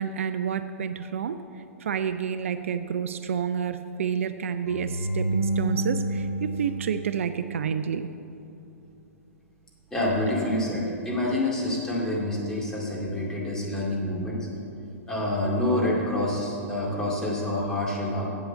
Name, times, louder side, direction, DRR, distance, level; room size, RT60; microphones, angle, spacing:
voice 1, 0.0-8.1, right 7 dB, 60° right, 11 dB, 0.4 m, -29 dB
sound 1, 4.7-7.9, right 1 dB, 85° left, 0.7 m, -29 dB
voice 2, 9.9-14.5 15.1-18.3, left 1 dB, 5° left, -4 dB, 2.2 m, -27 dB
8.2 x 7.8 x 7.0 m, 2.8 s
figure-of-eight pair, 110°, 8 cm